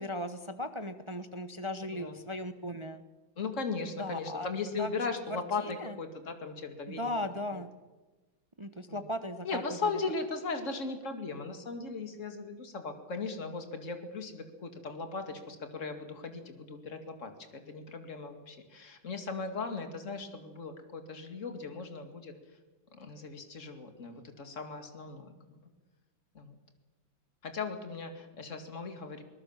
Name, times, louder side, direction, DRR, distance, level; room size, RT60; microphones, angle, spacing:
voice 1, 0.0-3.0 4.0-4.5 4.8-4.9 5.6-5.9 6.9-7.7 8.6-9.6, left 1 dB, 25° right, 9 dB, 0.7 m, -37 dB
voice 2, 1.9-2.3 3.4-7.1 7.5-7.6 8.9-9.0 9.4-22.3 22.9-25.6 26.3-26.6 27.4-29.2, left 4 dB, 40° left, 6 dB, 2.6 m, -38 dB
23.0 x 20.0 x 7.4 m, 1.2 s
omnidirectional pair, 2.2 m